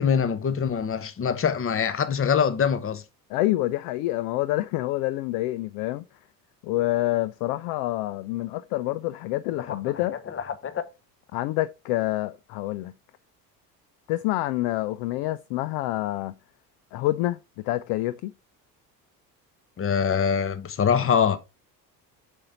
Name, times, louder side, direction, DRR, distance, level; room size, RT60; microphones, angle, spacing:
voice 1, 0.0-3.0 9.6-9.8 10.3-10.8 19.8-21.4, left 7 dB, 25° left, 1.0 m, -24 dB
voice 2, 3.3-6.0 6.6-10.2 11.3-12.9 14.1-16.3 16.9-17.4 17.6-18.3, left 17 dB, 50° left, 0.5 m, -27 dB
6.7 x 5.3 x 4.0 m
figure-of-eight pair, 60°, 49 cm